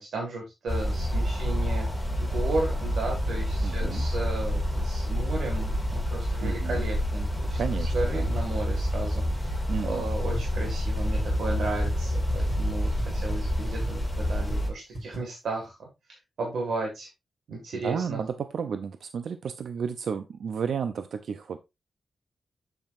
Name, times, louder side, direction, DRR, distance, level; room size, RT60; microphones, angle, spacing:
voice 1, 0.0-15.7 16.1-17.1 17.5-18.2, right 2 dB, 90° right, 0 dB, 1.8 m, -34 dB
sound 1, 0.7-14.7, equal, ahead, 2.0 m, -28 dB
voice 2, 3.6-4.1 6.4-6.8 7.5-8.3 9.7-10.1 17.7-21.6, right 6 dB, 75° right, 10 dB, 0.5 m, -32 dB
sound 2, 10.3-10.4 10.6-10.7 11.0-11.2 11.6-11.9 12.3-12.5 13.0-13.1 13.3-13.4 13.6-13.9 14.3-14.5 14.9-15.2, right 1 dB, 35° right, 3.7 m, -37 dB
7.8 x 7.2 x 2.5 m, 0.23 s
wide cardioid pair, 150°, 0 cm